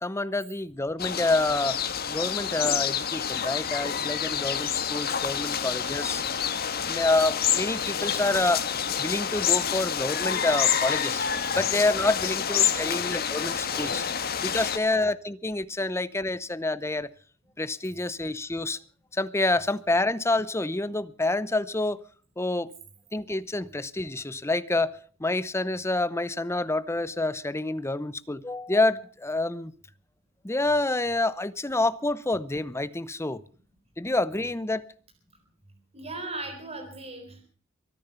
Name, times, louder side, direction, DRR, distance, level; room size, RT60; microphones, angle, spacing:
voice 1, 0.0-1.8 2.1-6.2 6.9-8.7 9.0-11.3 11.6-14.0 14.4-17.1 17.6-18.8 19.1-22.0 22.4-22.7 23.1-29.7 30.4-33.4 34.0-34.9, left 2 dB, 15° left, 16 dB, 0.7 m, -27 dB
sound 1, 1.0-14.8, left 8 dB, 50° left, 1.4 m, -28 dB
voice 2, 12.6-13.0 13.6-14.2 14.5-14.9 35.7-37.4, right 2 dB, 30° right, 4 dB, 4.0 m, -39 dB
23.5 x 10.5 x 5.7 m, 0.43 s
head